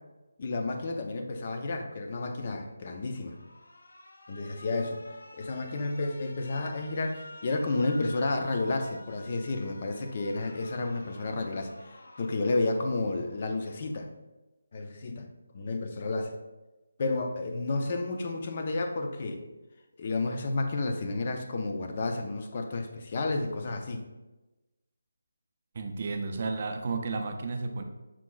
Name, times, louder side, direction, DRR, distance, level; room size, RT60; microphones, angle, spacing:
voice 1, 0.4-3.4 4.3-5.0 5.3-14.1 14.7-15.3 15.5-16.4 17.0-19.4 20.0-24.0, left 2 dB, 30° left, 5 dB, 0.4 m, -31 dB
Alarm, 3.0-14.0, left 1 dB, 85° left, 0.6 m, -50 dB
voice 2, 25.7-27.8, right 3 dB, 35° right, 5 dB, 0.4 m, -32 dB
6.0 x 2.3 x 3.8 m, 1.1 s
figure-of-eight pair, 170°, 0 cm